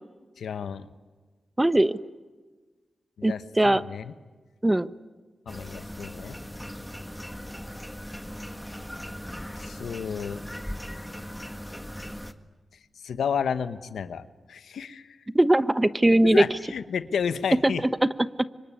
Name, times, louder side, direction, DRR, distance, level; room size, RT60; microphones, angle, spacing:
voice 1, 0.4-0.9 3.2-4.1 5.5-6.4 9.6-10.4 13.0-15.2 16.2-17.8, left 7 dB, 90° left, 12 dB, 1.1 m, -31 dB
voice 2, 1.6-2.0 3.2-3.8 4.6-4.9 15.3-16.4 17.6-18.1, right 1 dB, 20° right, 14 dB, 1.0 m, -20 dB
sound 1, 5.5-12.3, equal, 5° left, 1.8 m, -39 dB
25.5 x 23.5 x 9.9 m, 1.3 s
cardioid pair, 50°, 0 cm